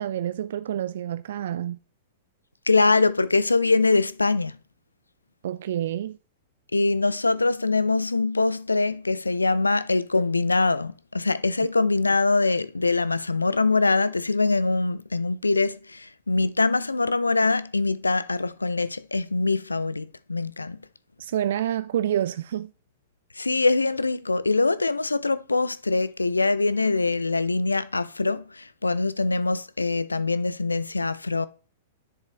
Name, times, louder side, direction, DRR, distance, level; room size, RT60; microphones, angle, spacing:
voice 1, 0.0-1.8 5.4-6.2 21.2-22.7, right 11 dB, 60° right, 0.4 m, -28 dB
voice 2, 2.7-4.6 6.7-20.8 23.4-31.5, left 3 dB, 85° left, 0.5 m, -23 dB
10.5 x 7.6 x 3.4 m
figure-of-eight pair, 105°, 0 cm